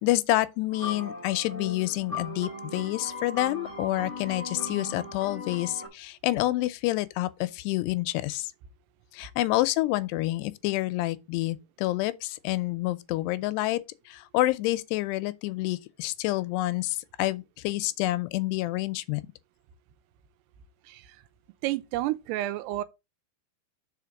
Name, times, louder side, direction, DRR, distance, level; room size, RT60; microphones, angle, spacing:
voice 1, 0.0-8.5 9.1-13.8 14.1-19.2, left 17 dB, 85° left, 2.7 m, -28 dB
sound 1, 0.7-5.9, left 3 dB, 5° right, 1.8 m, -38 dB
voice 2, 21.6-22.8, right 15 dB, 90° right, 2.7 m, -30 dB
5.1 x 5.1 x 5.8 m
omnidirectional pair, 4.7 m